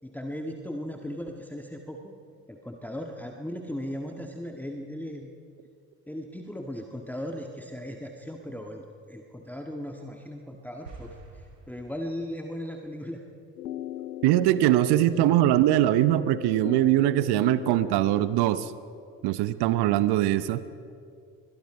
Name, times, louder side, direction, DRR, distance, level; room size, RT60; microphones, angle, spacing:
voice 1, 0.0-2.1 2.5-5.3 6.1-13.2 15.2-15.4, equal, 5° left, 2 dB, 1.8 m, -37 dB
sound 1, 10.8-12.5, right 2 dB, 85° right, 2.7 m, -47 dB
sound 2, 13.6-18.5, left 12 dB, 85° left, 0.5 m, -38 dB
voice 2, 14.2-18.7 19.2-20.6, right 14 dB, 55° right, 15 dB, 1.0 m, -22 dB
29.5 x 23.0 x 5.0 m, 2.4 s
figure-of-eight pair, 50°, 48 cm